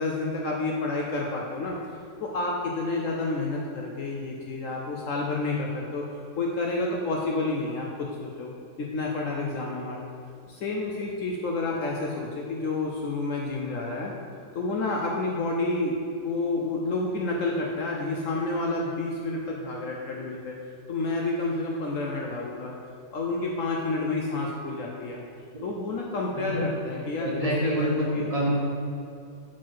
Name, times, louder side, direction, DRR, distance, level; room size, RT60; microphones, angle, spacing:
voice 1, 0.0-1.8 2.2-6.1 6.4-8.5 8.8-10.0 10.5-14.1 14.5-16.0 16.2-20.5 20.9-22.7 23.1-25.2 25.6-28.2, left 2 dB, 65° left, -1 dB, 0.8 m, -29 dB
voice 2, 26.3-26.7 27.2-28.6, right 1 dB, 25° right, -5 dB, 1.1 m, -27 dB
6.1 x 4.6 x 4.4 m, 2.6 s
omnidirectional pair, 1.9 m